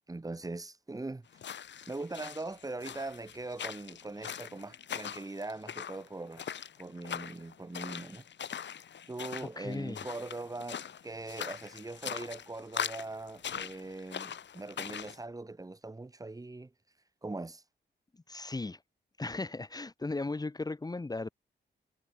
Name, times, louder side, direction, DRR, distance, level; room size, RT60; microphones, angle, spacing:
voice 1, 0.1-1.3 1.9-8.2 9.1-16.7 17.2-17.6, right 2 dB, 20° right, 4.4 m, -41 dB
sound 1, 1.3-15.2, left 8 dB, 85° left, 6.1 m, -42 dB
voice 2, 9.4-10.1 18.3-18.8 19.2-21.3, left 3 dB, 20° left, 3.3 m, -36 dB
wide cardioid pair, 140°, 18 cm